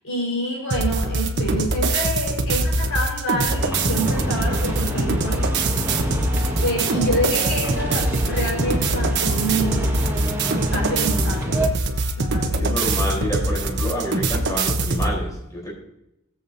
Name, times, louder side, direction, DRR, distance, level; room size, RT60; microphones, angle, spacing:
voice 1, 0.0-5.5 6.6-10.0 10.7-11.8 12.2-12.8, equal, 70° left, -2 dB, 4.6 m, -27 dB
sound 1, 0.7-15.1, right 2 dB, 55° right, 1.1 m, -23 dB
sound 2, 3.6-11.7, equal, 10° right, 1.7 m, -28 dB
voice 2, 12.5-15.7, equal, 15° left, -4 dB, 4.1 m, -28 dB
20.0 x 7.6 x 2.8 m, 0.82 s
head